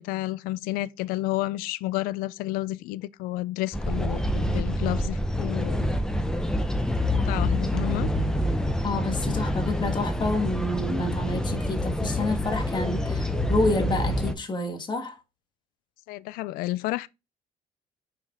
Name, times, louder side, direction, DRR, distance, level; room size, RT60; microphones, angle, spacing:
voice 1, 0.0-5.9 7.2-8.1 16.1-17.1, left 17 dB, 85° left, 0.4 m, -31 dB
sound 1, 3.7-14.3, left 1 dB, 5° left, 0.8 m, -27 dB
voice 2, 8.8-15.2, left 2 dB, 30° left, 1.6 m, -29 dB
5.8 x 4.7 x 3.8 m
cardioid pair, 95°, 15 cm